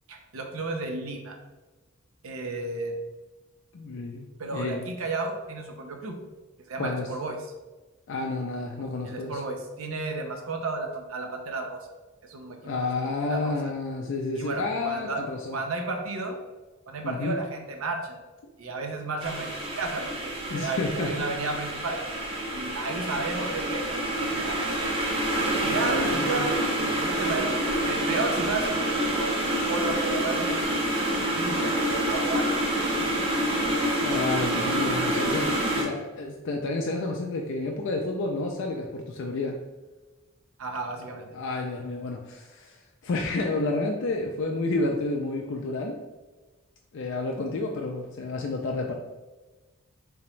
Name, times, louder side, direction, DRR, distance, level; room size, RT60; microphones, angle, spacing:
voice 1, 0.1-1.4 2.2-2.9 4.4-6.2 6.7-7.4 9.0-11.8 12.2-12.7 13.3-13.6 14.4-15.2 15.5-16.4 16.9-18.2 18.6-22.0 22.5-25.2 25.6-30.7 31.2-32.6 40.6-41.3, right 3 dB, 80° right, 3 dB, 0.6 m, -33 dB
voice 2, 3.7-4.8 6.8-7.1 8.1-9.4 12.6-15.6 17.0-17.4 20.5-21.1 25.7-26.5 34.0-39.6 41.3-42.8 43.0-46.0 46.9-48.9, left 2 dB, 60° left, 1 dB, 0.4 m, -30 dB
sound 1, 19.2-35.8, right 1 dB, 25° right, 0.6 m, -27 dB
3.4 x 2.9 x 3.1 m, 1.2 s
head